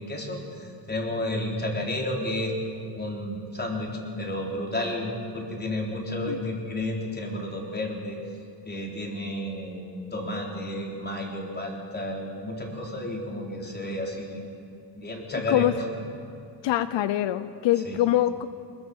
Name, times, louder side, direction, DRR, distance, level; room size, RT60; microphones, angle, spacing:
voice 1, 0.0-2.5 3.0-8.2 8.7-14.4 15.0-16.0 17.9-18.0, left 1 dB, 20° left, 0 dB, 3.9 m, -32 dB
voice 2, 15.3-15.7 16.6-18.5, left 13 dB, 90° left, 13 dB, 0.8 m, -24 dB
22.0 x 21.0 x 7.2 m, 2.4 s
cardioid pair, 120°, 43 cm